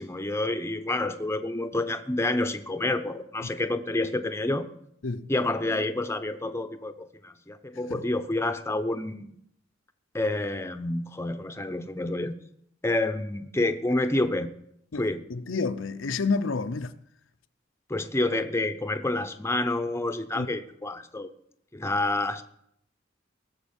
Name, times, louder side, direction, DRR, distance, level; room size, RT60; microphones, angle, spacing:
voice 1, 0.0-4.7 5.3-9.3 10.1-12.4 12.8-14.5 15.0-15.2 17.9-21.3 21.7-22.4, left 2 dB, 15° left, 0.7 m, -28 dB
voice 2, 15.3-16.9 20.3-20.5, left 4 dB, 80° left, 0.7 m, -29 dB
18.5 x 7.1 x 7.1 m
head